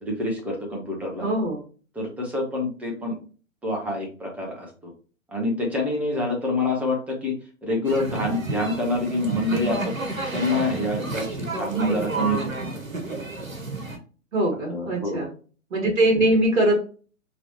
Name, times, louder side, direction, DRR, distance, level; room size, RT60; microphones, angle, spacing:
voice 1, 0.0-1.3 2.0-3.2 3.6-4.9 5.3-7.3 7.6-9.9 10.3-12.5 14.7-15.2, left 1 dB, 5° right, -1 dB, 0.7 m, -26 dB
voice 2, 1.2-1.6 11.7-12.1 14.3-15.3 15.7-16.8, right 1 dB, 60° right, 2 dB, 1.7 m, -22 dB
sound 1, 7.8-14.0, right 2 dB, 85° right, 1.1 m, -31 dB
4.9 x 3.0 x 2.9 m, 0.38 s
figure-of-eight pair, 115°, 40 cm